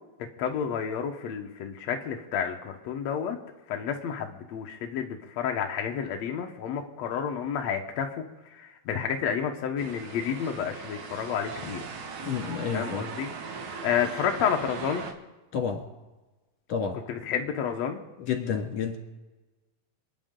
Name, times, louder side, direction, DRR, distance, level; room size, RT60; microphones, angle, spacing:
voice 1, 0.4-3.4 3.7-8.1 8.5-11.9 12.7-15.1 17.1-18.0, left 7 dB, 80° left, 3 dB, 1.5 m, -30 dB
sound 1, 9.8-15.1, right 5 dB, 60° right, 2.3 m, -39 dB
voice 2, 12.2-13.0 15.5-15.8 16.7-17.0 18.3-19.0, left 6 dB, 50° left, 3 dB, 2.6 m, -29 dB
28.0 x 9.7 x 3.8 m, 1.1 s
omnidirectional pair, 4.6 m